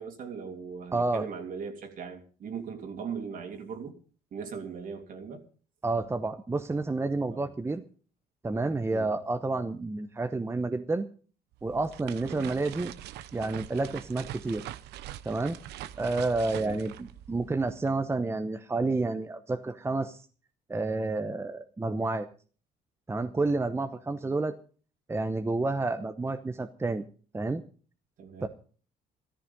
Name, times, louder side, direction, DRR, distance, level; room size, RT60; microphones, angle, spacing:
voice 1, 0.0-4.0 4.3-5.5 7.3-7.5 8.9-9.1 12.2-12.5 16.6-16.8 28.2-28.5, right 6 dB, 55° right, 5 dB, 3.0 m, -39 dB
voice 2, 0.9-1.3 5.8-7.8 8.4-11.1 11.6-12.9 13.3-14.6 15.2-15.6 16.0-20.2 20.7-22.3 23.1-24.6 25.1-27.0 27.3-27.6 28.4-28.5, right 3 dB, 15° right, 8 dB, 0.9 m, -30 dB
sound 1, 11.5-17.9, right 13 dB, 80° right, 0.8 m, -43 dB
14.0 x 14.0 x 5.4 m, 0.41 s
cardioid pair, 110°, 17 cm